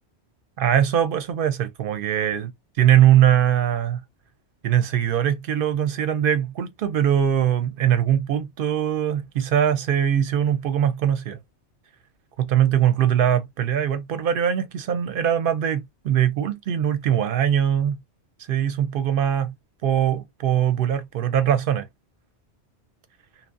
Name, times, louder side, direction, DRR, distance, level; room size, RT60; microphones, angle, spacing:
voice 1, 0.6-2.5 2.8-4.0 4.6-11.4 12.4-18.0 18.5-19.5 19.8-21.9, right 10 dB, 60° right, 0.6 m, -21 dB
2.7 x 2.0 x 2.4 m
omnidirectional pair, 1.2 m